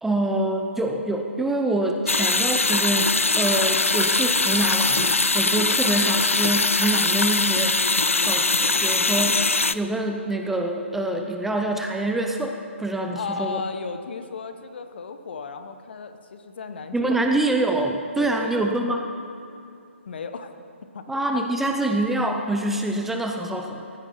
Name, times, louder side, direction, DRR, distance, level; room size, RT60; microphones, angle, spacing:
voice 1, 0.0-7.9 8.2-13.6 16.9-19.1 21.1-23.9, right 2 dB, 5° right, 3 dB, 0.5 m, -26 dB
sound 1, 2.1-9.8, left 3 dB, 85° left, 0.4 m, -21 dB
voice 2, 13.1-17.4 18.2-18.6 20.1-20.5 20.9-21.0 21.3-21.4, left 5 dB, 50° left, 8 dB, 0.9 m, -35 dB
15.0 x 12.0 x 4.2 m, 2.6 s
figure-of-eight pair, 135°, 7 cm